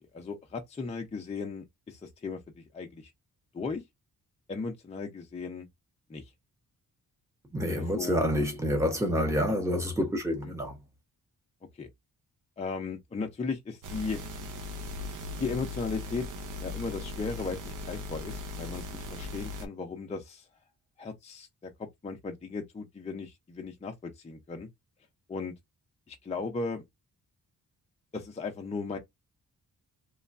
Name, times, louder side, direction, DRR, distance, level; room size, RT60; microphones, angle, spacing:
voice 1, 0.0-3.1 3.5-3.8 4.5-5.7 6.1-6.3 7.9-8.2 10.4-10.5 11.7-11.9 12.6-14.2 15.4-16.3 16.6-20.5 21.0-24.7 25.3-25.5 26.1-26.8 28.1-29.0, left 4 dB, 20° left, 0.5 m, -36 dB
voice 2, 7.5-10.8, equal, 10° right, 0.8 m, -28 dB
sound 1, 13.8-19.7, left 2 dB, 60° right, 0.6 m, -38 dB
3.1 x 2.2 x 2.4 m
wide cardioid pair, 175°, 36 cm